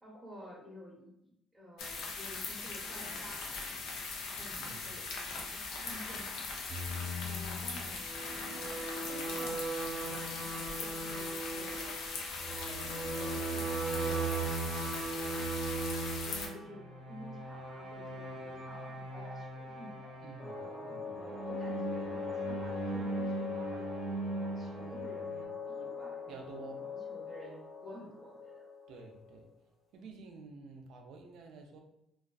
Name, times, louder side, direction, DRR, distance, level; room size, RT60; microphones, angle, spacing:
voice 1, 0.0-3.7 4.2-6.7 7.2-8.0 8.4-9.6 10.0-11.9 12.4-14.5 15.2-20.1 20.6-23.9 24.3-28.7 29.9-30.2, equal, ahead, -5 dB, 0.7 m, -51 dB
sound 1, 1.8-16.5, left 4 dB, 75° left, 0.5 m, -40 dB
voice 2, 4.5-4.9 20.2-21.1 26.3-26.8 28.9-29.5 29.9-31.8, right 4 dB, 70° right, 3 dB, 0.4 m, -50 dB
sound 2, 6.7-25.4, right 2 dB, 50° right, 0.9 m, -39 dB
sound 3, 20.4-29.4, left 5 dB, 30° left, 0.6 m, -42 dB
2.3 x 2.3 x 2.2 m, 0.80 s
cardioid pair, 105°, 0 cm